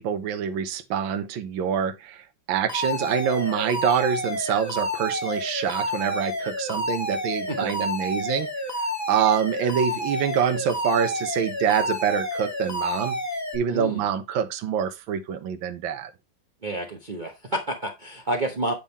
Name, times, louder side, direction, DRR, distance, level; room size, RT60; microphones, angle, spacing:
voice 1, 0.0-8.5 9.1-13.2 13.5-16.1, right 8 dB, 75° right, 1.5 m, -26 dB
Alarm, 2.7-13.5, left 1 dB, 15° left, 0.5 m, -29 dB
voice 2, 13.7-14.0 16.6-18.7, right 1 dB, 50° right, 0.5 m, -29 dB
8.7 x 3.6 x 4.1 m
omnidirectional pair, 2.3 m